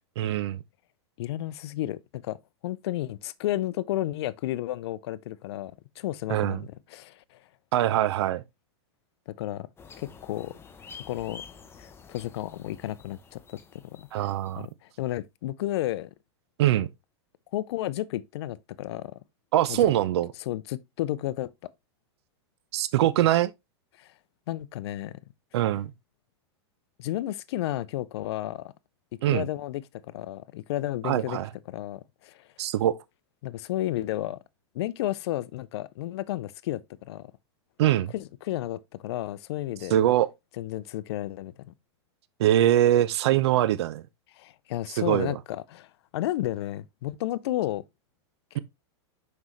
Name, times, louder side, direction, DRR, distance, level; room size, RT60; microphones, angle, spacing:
voice 1, 0.2-0.6 6.3-6.6 7.7-8.4 14.1-14.7 16.6-16.9 19.5-20.3 22.7-23.5 25.5-25.9 29.2-29.5 31.0-31.5 32.6-33.0 37.8-38.1 39.9-40.3 42.4-44.0 45.0-45.3 48.5-48.6, right 12 dB, 70° right, 0.7 m, -23 dB
voice 2, 1.2-2.4 2.6-7.4 9.4-9.7 10.0-10.5 10.9-11.4 11.8-16.1 17.5-19.2 19.7-19.8 20.4-21.5 24.0-24.1 24.5-25.2 27.0-28.7 29.3-29.8 30.1-31.4 31.7-32.4 33.4-34.4 34.7-36.8 37.1-37.3 38.1-40.0 40.6-41.5 44.4-47.8, left 14 dB, 65° left, 0.6 m, -32 dB
sound 1, 9.8-14.6, left 6 dB, 15° left, 0.8 m, -49 dB
6.0 x 5.4 x 3.1 m
supercardioid pair, 135°, 14 cm